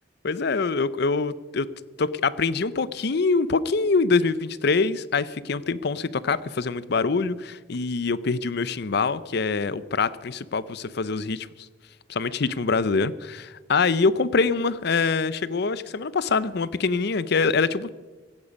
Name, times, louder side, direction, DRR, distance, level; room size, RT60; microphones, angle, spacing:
voice 1, 0.2-1.7 2.0-11.5 12.1-17.9, left 4 dB, 60° left, 17 dB, 0.6 m, -24 dB
17.0 x 15.0 x 5.3 m, 1.3 s
head